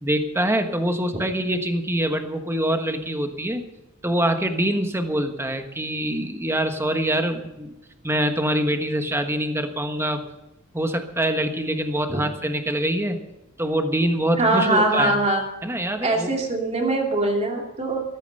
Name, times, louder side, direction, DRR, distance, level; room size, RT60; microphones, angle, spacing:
voice 1, 0.0-3.6 4.0-7.7 8.0-10.2 10.7-13.2 13.6-15.2 15.6-16.4, right 1 dB, 10° right, 6 dB, 1.3 m, -24 dB
voice 2, 14.4-15.4 16.0-18.0, right 2 dB, 30° right, 1 dB, 2.7 m, -22 dB
14.5 x 13.5 x 5.4 m, 0.95 s
head